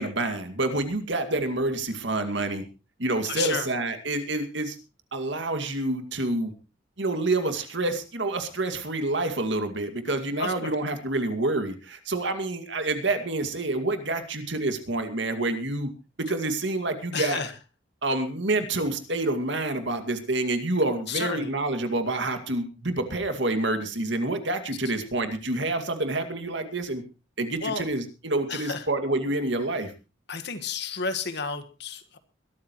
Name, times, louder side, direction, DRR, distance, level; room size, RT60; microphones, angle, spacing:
voice 1, 0.0-2.6 3.0-4.8 5.1-6.5 7.0-15.9 16.3-17.4 18.0-27.0 27.4-29.9, right 2 dB, 60° right, 8 dB, 2.3 m, -28 dB
voice 2, 3.3-3.7 10.4-10.7 17.1-17.5 21.1-21.5 27.6-27.9 28.5-28.9 30.3-32.2, left 5 dB, 55° left, 9 dB, 1.6 m, -31 dB
22.0 x 13.0 x 3.1 m, 0.30 s
head